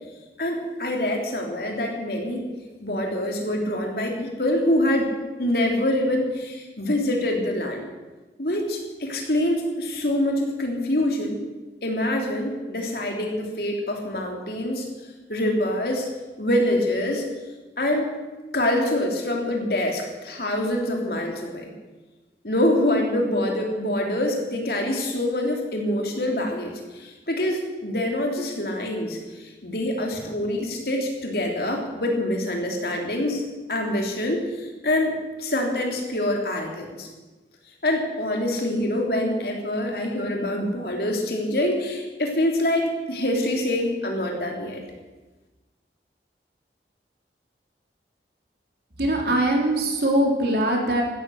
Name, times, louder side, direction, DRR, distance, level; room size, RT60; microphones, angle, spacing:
voice 1, 0.4-2.4 2.8-5.1 5.4-7.9 8.4-11.4 11.8-14.8 15.3-16.1 16.4-17.2 17.8-18.1 18.5-21.7 22.4-26.7 27.0-29.2 29.6-33.4 33.7-35.1 35.4-37.1 37.8-44.8, left 1 dB, 60° left, 1 dB, 3.2 m, -25 dB
voice 2, 49.0-51.0, right 1 dB, 65° right, 0 dB, 3.6 m, -22 dB
15.5 x 13.0 x 6.4 m, 1.2 s
head